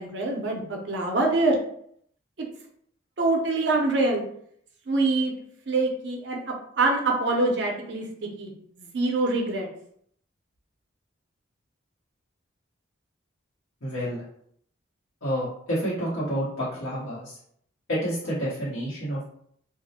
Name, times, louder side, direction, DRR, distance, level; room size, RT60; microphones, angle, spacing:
voice 1, 0.0-1.6 3.2-4.2 4.9-5.3 5.7-6.4 6.8-8.5 8.8-9.7, right 2 dB, 55° right, 1 dB, 0.5 m, -24 dB
voice 2, 13.8-14.2 15.2-17.4 17.9-19.2, equal, 90° left, -11 dB, 0.9 m, -29 dB
2.3 x 2.0 x 2.7 m, 0.67 s
head